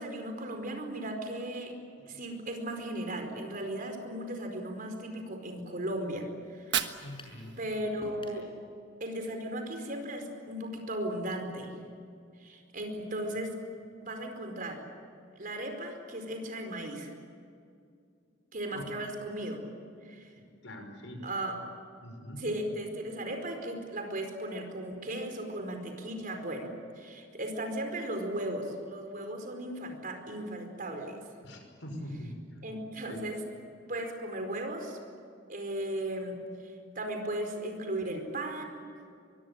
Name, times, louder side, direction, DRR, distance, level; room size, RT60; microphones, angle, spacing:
voice 1, 0.0-1.7 2.1-6.3 6.5-7.0 7.6-8.5 9.0-11.7 12.4-13.5 14.0-14.8 15.4-17.1 18.5-19.6 20.0-20.3 21.2-21.6 22.4-26.7 27.0-31.2 32.6-33.4 33.9-35.0 35.5-38.8, right 1 dB, 45° right, 5 dB, 4.7 m, -36 dB
Fire, 6.4-8.4, right 9 dB, 65° right, 1.5 m, -37 dB
voice 2, 7.0-7.6 18.7-18.8 20.4-21.2 22.0-22.4 31.4-32.3 33.1-33.2, equal, 85° left, 4 dB, 5.9 m, -43 dB
sound 1, 7.2-7.4 8.0-8.5, left 1 dB, 30° left, 5.9 m, -47 dB
23.5 x 23.5 x 9.0 m, 2.3 s
head